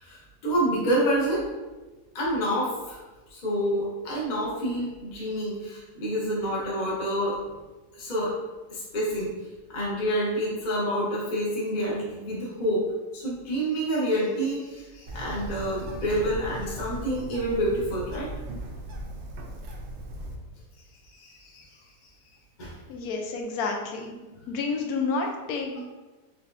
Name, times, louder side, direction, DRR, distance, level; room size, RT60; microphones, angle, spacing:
voice 1, 0.0-1.4 2.1-3.0 3.3-7.4 7.9-8.3 8.7-9.3 9.7-12.8 13.1-18.3 21.0-21.8 22.6-22.8, equal, 40° left, -6 dB, 0.7 m, -28 dB
Bird, 15.1-20.4, right 1 dB, 65° right, 0.7 m, -38 dB
voice 2, 22.9-24.2 24.5-25.8, left 4 dB, 75° left, 2 dB, 1.1 m, -29 dB
4.4 x 3.1 x 2.5 m, 1.2 s
omnidirectional pair, 1.6 m